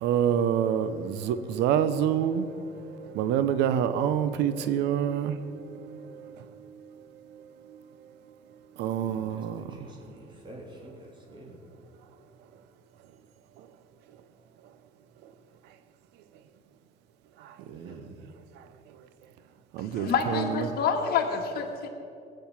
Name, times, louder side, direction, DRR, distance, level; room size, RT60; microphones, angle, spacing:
voice 1, 0.0-2.5 3.0-5.9 6.2-6.3 8.8-9.6 17.7-18.0 19.7-20.7, right 9 dB, 90° right, 13 dB, 0.8 m, -27 dB
voice 2, 9.0-11.5 17.8-18.1, right 1 dB, 30° right, -1 dB, 3.6 m, -48 dB
voice 3, 20.1-21.9, left 6 dB, 65° left, 3 dB, 2.0 m, -27 dB
18.5 x 7.9 x 7.2 m, 2.5 s
cardioid pair, 110°, 17 cm